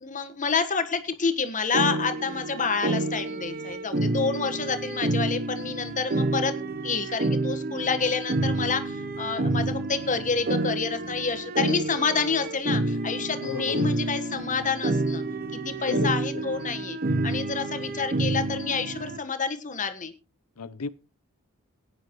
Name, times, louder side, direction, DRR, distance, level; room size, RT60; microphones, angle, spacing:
voice 1, 0.0-6.5 6.8-15.2 15.5-17.0 17.2-20.1, left 5 dB, 35° left, 1.4 m, -28 dB
sound 1, 1.7-19.2, right 2 dB, 40° right, 0.8 m, -29 dB
voice 2, 13.4-13.9 15.9-16.5 20.6-20.9, left 4 dB, 90° left, 0.8 m, -33 dB
17.5 x 10.0 x 3.1 m
head